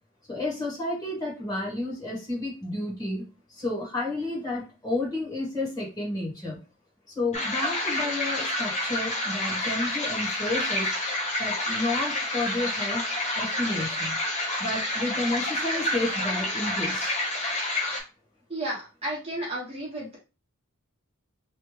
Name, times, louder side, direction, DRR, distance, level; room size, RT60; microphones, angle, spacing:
voice 1, 0.3-6.6 7.2-10.9 11.4-13.1 13.3-14.2 14.6-17.1, left 2 dB, 20° left, -6 dB, 1.6 m, -31 dB
sound 1, 7.3-18.0, left 1 dB, 35° left, 1.0 m, -29 dB
voice 2, 18.5-20.2, right 1 dB, 30° right, -5 dB, 1.2 m, -33 dB
3.3 x 2.6 x 3.2 m, 0.31 s
head